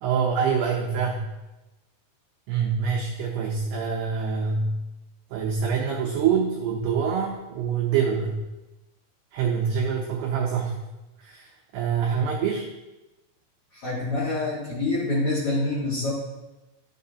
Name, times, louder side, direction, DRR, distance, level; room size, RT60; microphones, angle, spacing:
voice 1, 0.0-1.2 2.5-4.7 5.3-8.4 9.3-10.8 11.2-12.7, right 6 dB, 85° right, -1 dB, 2.3 m, -25 dB
voice 2, 13.7-16.1, left 2 dB, 65° left, -6 dB, 1.8 m, -26 dB
12.5 x 5.8 x 2.8 m, 1.0 s
omnidirectional pair, 5.7 m